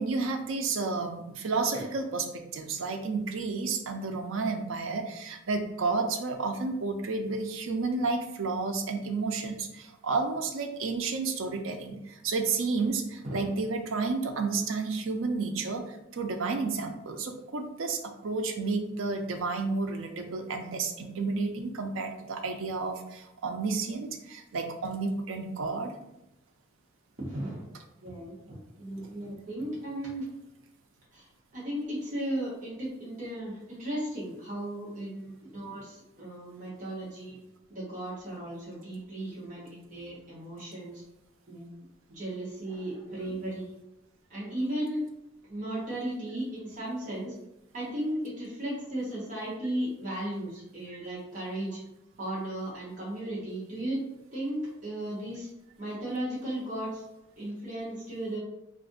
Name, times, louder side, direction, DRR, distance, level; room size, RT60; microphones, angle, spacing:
voice 1, 0.0-2.2 2.5-26.0, right 4 dB, 80° right, 5 dB, 0.5 m, -31 dB
voice 2, 27.2-27.6 28.0-30.2 31.1-31.3 31.5-37.4 37.7-41.0 41.5-41.8 42.1-43.7 44.3-45.0 45.5-47.3 47.7-51.8 52.2-54.0 54.3-55.5 55.8-57.0 57.4-58.4, right 1 dB, 40° right, -7 dB, 0.9 m, -35 dB
2.5 x 2.5 x 3.7 m, 0.89 s
head